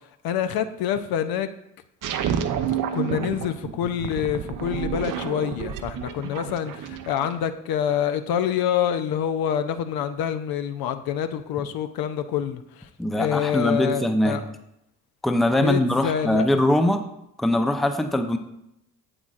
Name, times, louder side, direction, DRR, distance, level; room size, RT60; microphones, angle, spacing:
voice 1, 0.2-1.5 2.9-12.9 13.1-14.4 15.6-16.5, left 9 dB, 55° left, 10 dB, 0.6 m, -26 dB
sound 1, 2.0-7.4, right 8 dB, 45° right, 0.7 m, -30 dB
voice 2, 13.0-14.5 15.2-17.0 17.4-18.4, left 1 dB, ahead, 7 dB, 0.6 m, -22 dB
8.6 x 8.1 x 2.5 m, 0.82 s
figure-of-eight pair, 45°, 45 cm